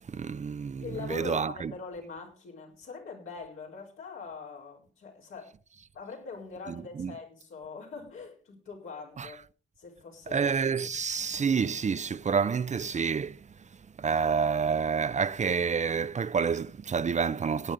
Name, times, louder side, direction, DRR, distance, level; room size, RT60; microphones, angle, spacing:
voice 1, 0.1-1.7 7.0-7.1 9.2-9.3 10.3-13.5 14.0-17.7, right 6 dB, 35° right, 0.5 m, -28 dB
voice 2, 0.8-5.5 5.9-9.4 9.8-10.5, left 5 dB, 85° left, 4.3 m, -42 dB
18.0 x 9.0 x 3.8 m
cardioid pair, 55°, 20 cm